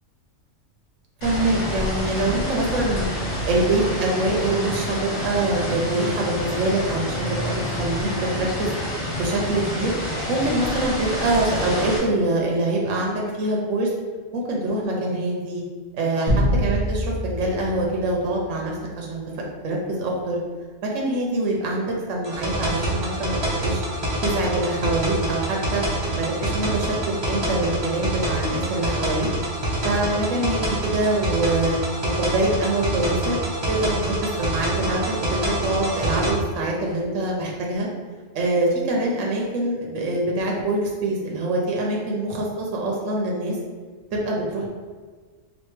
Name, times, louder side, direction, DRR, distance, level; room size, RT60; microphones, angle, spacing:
sound 1, 1.2-12.0, equal, 70° left, 1.6 m, -28 dB
voice 1, 1.2-3.1 3.5-8.7 9.2-9.9 10.3-13.9 14.3-15.6 15.9-19.2 19.6-20.4 20.8-23.8 24.2-25.8 26.2-27.0 27.3-29.3 29.8-31.8 32.2-33.4 33.7-35.0 35.3-37.9 38.3-43.6 44.1-44.7, right 2 dB, 75° right, -1 dB, 1.0 m, -24 dB
sound 2, 16.3-18.8, equal, 10° left, 1.2 m, -25 dB
sound 3, 22.2-36.3, right 1 dB, 30° right, 0.6 m, -26 dB
4.3 x 2.7 x 3.2 m, 1.5 s
omnidirectional pair, 1.3 m